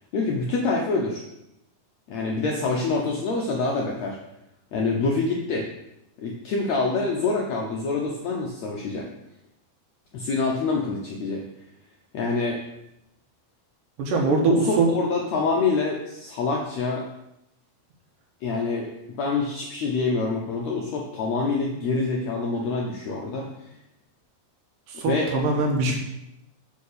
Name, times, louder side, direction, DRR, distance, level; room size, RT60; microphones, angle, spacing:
voice 1, 0.1-1.2 2.1-4.2 4.7-5.7 6.2-9.1 10.1-11.4 12.1-12.6 14.2-17.0 18.4-18.9 19.2-23.7 24.9-25.3 25.8-25.9, left 3 dB, 75° left, 0 dB, 1.6 m, -26 dB
voice 2, 14.0-14.9 24.9-26.0, right 3 dB, 70° right, 1 dB, 2.7 m, -22 dB
8.3 x 4.6 x 6.7 m, 0.86 s
omnidirectional pair, 4.2 m